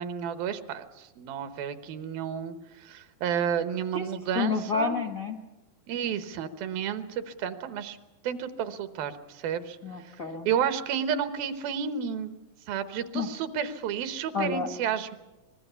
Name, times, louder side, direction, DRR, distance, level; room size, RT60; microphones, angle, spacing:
voice 1, 0.0-5.0 5.9-8.0 8.2-9.8 10.5-12.3 12.7-15.2, right 8 dB, 85° right, 10 dB, 3.0 m, -31 dB
voice 2, 4.3-5.4 9.8-10.5 13.1-13.3 14.3-14.7, left 4 dB, 75° left, 4 dB, 0.7 m, -29 dB
24.5 x 20.0 x 7.0 m, 1.0 s
omnidirectional pair, 4.1 m